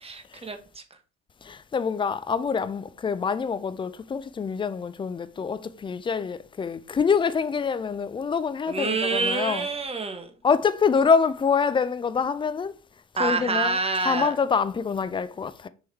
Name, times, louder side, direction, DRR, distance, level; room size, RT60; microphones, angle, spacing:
voice 1, 0.0-0.8 8.7-10.3 13.2-14.3, right 4 dB, 15° right, 1.2 m, -27 dB
voice 2, 1.4-9.7 10.4-12.7 13.2-13.8 14.0-15.7, left 6 dB, 15° left, 0.4 m, -25 dB
6.1 x 3.6 x 4.5 m
figure-of-eight pair, 60°, 40 cm